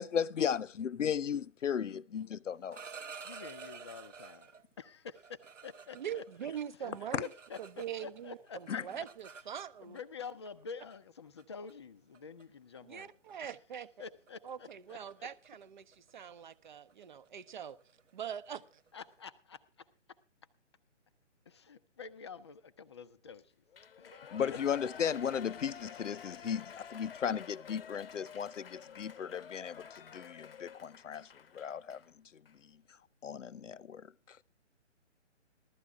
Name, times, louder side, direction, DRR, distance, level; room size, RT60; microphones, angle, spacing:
voice 1, 0.0-2.8 7.1-7.2 8.7-8.8 24.3-32.0 33.2-34.4, left 8 dB, 85° left, 0.6 m, -35 dB
sound 1, 2.5-4.6 5.2-8.2 8.5-10.0 10.9-11.1 11.4-11.7 12.1-12.4 12.8-13.0 13.3-13.6 13.8-19.2, right 5 dB, 80° right, 0.9 m, -51 dB
voice 2, 3.2-4.5 4.8-6.2 6.8-9.1 9.8-13.1 14.0-15.3 18.9-19.9 21.5-23.6 24.0-24.6, left 6 dB, 25° left, 0.5 m, -48 dB
voice 3, 5.9-7.3 7.6-10.0 12.9-13.9 14.4-17.8 18.1-18.6, right 9 dB, 40° right, 0.7 m, -43 dB
Shout / Cheering, 23.7-32.1 32.5-32.6, left 7 dB, 50° left, 0.9 m, -50 dB
15.5 x 12.5 x 3.4 m
figure-of-eight pair, 145°, 36 cm